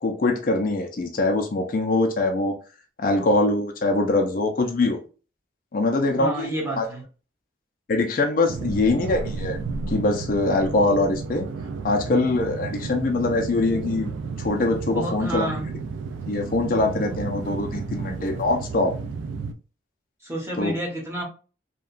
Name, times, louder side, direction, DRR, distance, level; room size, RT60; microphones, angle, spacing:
voice 1, 0.0-2.5 3.0-5.0 5.7-6.5 6.8-6.9 7.9-9.6 9.9-11.5 11.8-14.1 14.4-15.5 16.3-19.0 20.6-20.7, left 2 dB, 45° left, 0.3 m, -23 dB
voice 2, 6.2-7.0 14.9-15.7 20.2-21.2, right 1 dB, 15° right, 0.8 m, -30 dB
sound 1, 8.5-19.5, right 4 dB, 75° right, 0.3 m, -32 dB
2.8 x 2.2 x 2.4 m
head